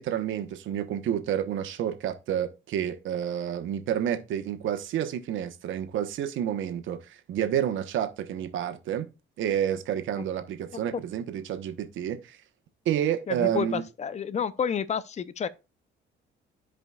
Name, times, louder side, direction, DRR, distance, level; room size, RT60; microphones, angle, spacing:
voice 1, 0.0-9.0 9.4-12.4 12.8-13.8, right 10 dB, 80° right, 1.1 m, -29 dB
voice 2, 13.3-15.5, left 7 dB, 35° left, 0.6 m, -30 dB
13.5 x 5.0 x 2.4 m
cardioid pair, 90°, 20 cm